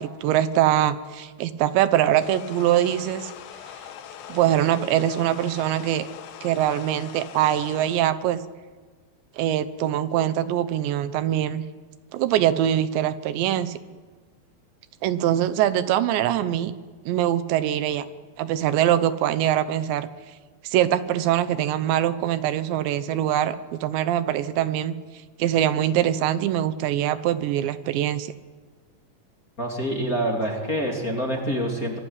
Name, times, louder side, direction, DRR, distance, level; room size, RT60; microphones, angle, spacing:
voice 1, 0.0-3.3 4.3-6.1 6.4-8.4 9.4-11.6 12.1-13.8 15.0-16.7 17.1-18.1 18.4-20.1 20.6-24.9 25.4-28.3, right 11 dB, 80° right, 13 dB, 3.2 m, -23 dB
sound 1, 2.2-8.0, left 9 dB, 75° left, 3.5 m, -42 dB
voice 2, 29.6-32.0, equal, 20° left, 1 dB, 2.8 m, -26 dB
25.5 x 22.5 x 9.8 m, 1.4 s
omnidirectional pair, 5.2 m